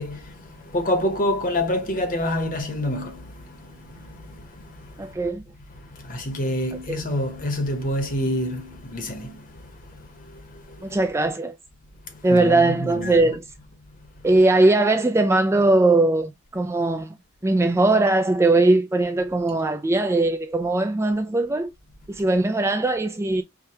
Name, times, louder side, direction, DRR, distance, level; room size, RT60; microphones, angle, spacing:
voice 1, 0.0-5.1 5.8-11.0 12.3-13.2, left 1 dB, 40° left, 1.0 m, -28 dB
voice 2, 5.0-5.4 6.9-7.0 10.8-11.5 12.2-13.4 14.2-17.1 17.4-21.7 22.1-23.4, right 2 dB, 15° right, 0.3 m, -20 dB
4.8 x 2.3 x 2.8 m
head